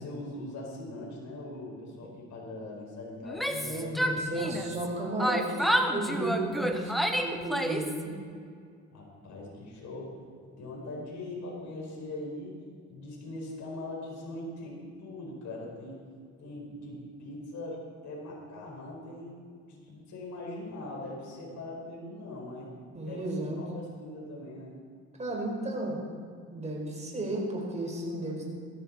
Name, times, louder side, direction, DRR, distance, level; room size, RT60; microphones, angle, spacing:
voice 1, 0.0-4.0 4.3-4.7 8.9-10.2 10.6-12.6 12.9-16.0 16.4-19.4 19.7-22.7 23.1-23.3 23.6-24.7, left 2 dB, 70° left, -2 dB, 4.9 m, -41 dB
Yell, 3.2-4.9 5.2-8.0, equal, ahead, 1.2 m, -29 dB
voice 2, 3.5-8.1 22.9-23.6 25.2-26.0 26.5-28.4, right 2 dB, 25° right, -2 dB, 4.6 m, -33 dB
17.5 x 13.0 x 4.3 m, 2.1 s
cardioid pair, 90°, 30 cm